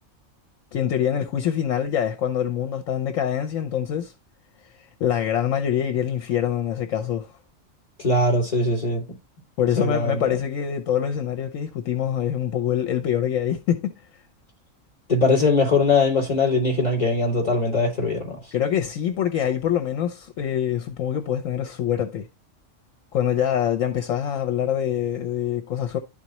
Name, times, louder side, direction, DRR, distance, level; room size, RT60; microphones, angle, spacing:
voice 1, 0.7-4.1 4.6-7.3 9.6-13.9 18.5-22.3 23.1-26.0, left 9 dB, 75° left, 1.1 m, -25 dB
voice 2, 8.0-9.0 9.8-10.4 15.1-18.4, left 3 dB, 30° left, 3.7 m, -21 dB
12.0 x 4.0 x 2.9 m
omnidirectional pair, 1.4 m